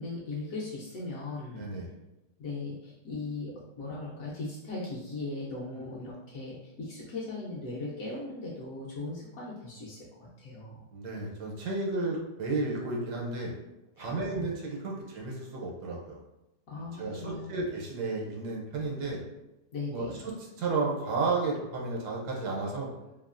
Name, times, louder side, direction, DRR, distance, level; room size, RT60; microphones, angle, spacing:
voice 1, 0.0-1.6 2.4-10.9 14.0-14.5 16.7-17.6 19.7-20.2, left 3 dB, 70° left, -5 dB, 0.9 m, -38 dB
voice 2, 1.6-1.9 5.7-5.9 10.9-13.5 14.0-16.2 17.0-19.2 19.9-22.9, right 3 dB, 75° right, -2 dB, 1.2 m, -33 dB
3.0 x 2.3 x 2.4 m, 0.97 s
omnidirectional pair, 1.8 m